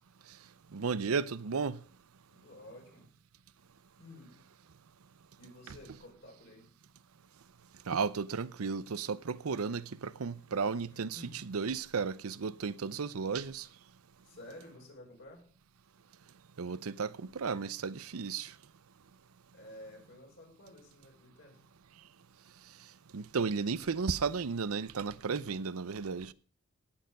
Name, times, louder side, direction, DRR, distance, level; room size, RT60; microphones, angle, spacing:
voice 1, 0.7-1.8 5.7-5.8 7.9-13.7 16.6-18.5 23.1-26.3, right 5 dB, 80° right, 0.6 m, -34 dB
voice 2, 2.3-3.1 4.0-4.4 5.4-6.7 10.9-11.4 14.2-15.4 19.5-21.6, left 1 dB, 60° left, 5.1 m, -52 dB
17.0 x 6.8 x 5.3 m
head